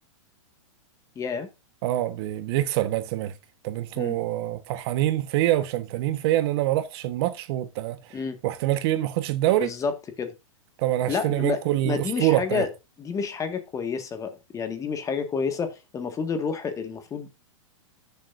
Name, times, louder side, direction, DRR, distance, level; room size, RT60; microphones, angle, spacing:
voice 1, 1.1-1.5 3.9-4.2 8.1-8.4 9.6-9.9 10.2-10.3 11.1-12.7 13.0-17.3, left 5 dB, 20° left, 1.8 m, -29 dB
voice 2, 1.8-3.3 3.6-8.0 8.4-9.7 10.8-12.6, right 14 dB, 50° right, 1.3 m, -25 dB
14.0 x 7.2 x 2.6 m
hypercardioid pair, 130°, 17 cm